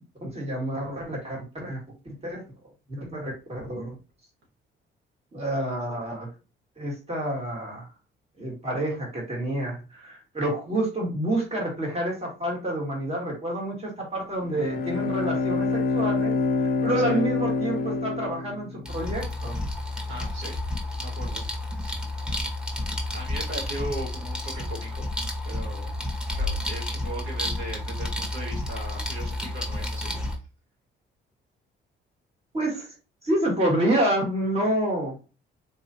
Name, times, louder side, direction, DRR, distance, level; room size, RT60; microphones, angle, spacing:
voice 1, 0.2-1.8 2.1-2.4 2.9-4.0 5.3-6.3 6.8-7.9 8.4-16.3 16.6-19.6 32.5-32.9 33.2-35.2, right 1 dB, 30° right, -2 dB, 2.0 m, -28 dB
Bowed string instrument, 14.4-19.1, left 3 dB, 45° left, 0.5 m, -26 dB
sound 1, 18.8-30.4, left 1 dB, 5° right, 1.2 m, -31 dB
voice 2, 20.1-20.5 20.9-21.4 21.8-22.0 23.1-25.1 25.4-25.9 26.4-30.4, right 1 dB, 80° right, -3 dB, 2.2 m, -38 dB
4.0 x 3.0 x 2.7 m, 0.31 s
cardioid pair, 90°, 20 cm